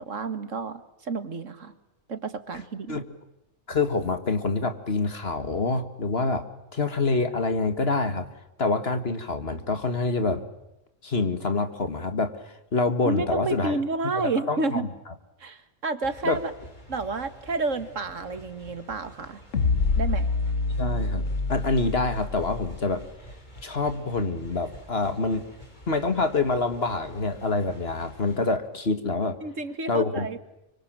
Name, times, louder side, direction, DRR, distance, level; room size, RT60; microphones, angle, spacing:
voice 1, 0.0-1.7 2.1-3.0 13.0-14.9 15.4-16.5 16.9-19.4 20.0-20.3 29.4-30.4, right 3 dB, 80° right, 11 dB, 2.2 m, -30 dB
voice 2, 3.7-6.5 6.7-8.3 8.6-10.5 11.0-13.8 14.1-14.9 16.2-16.4 20.8-21.2 21.5-23.1 23.6-25.4 25.9-29.4 29.9-30.3, left 3 dB, 55° left, 9 dB, 2.1 m, -26 dB
sound 1, 16.0-28.5, equal, 35° left, 5.2 m, -48 dB
sound 2, 19.5-23.0, left 3 dB, 80° left, 1.8 m, -26 dB
25.0 x 25.0 x 9.0 m, 0.90 s
omnidirectional pair, 1.3 m